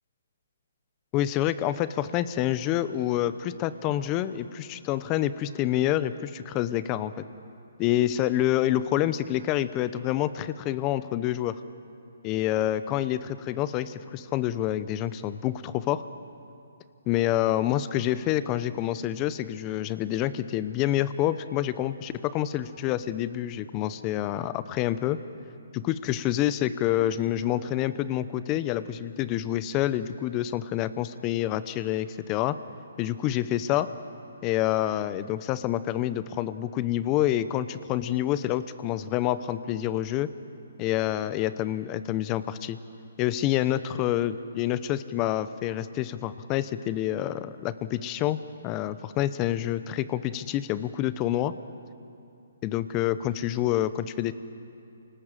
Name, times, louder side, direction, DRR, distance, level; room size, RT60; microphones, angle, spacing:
voice 1, 1.1-7.1 7.8-11.6 12.2-16.0 17.1-25.2 25.7-32.6 33.0-33.9 34.4-40.3 40.8-42.8 43.2-48.4 48.6-51.5 52.6-54.3, left 13 dB, 25° left, 14 dB, 0.8 m, -27 dB
28.5 x 19.5 x 7.5 m, 2.7 s
hypercardioid pair, 150°, 0 cm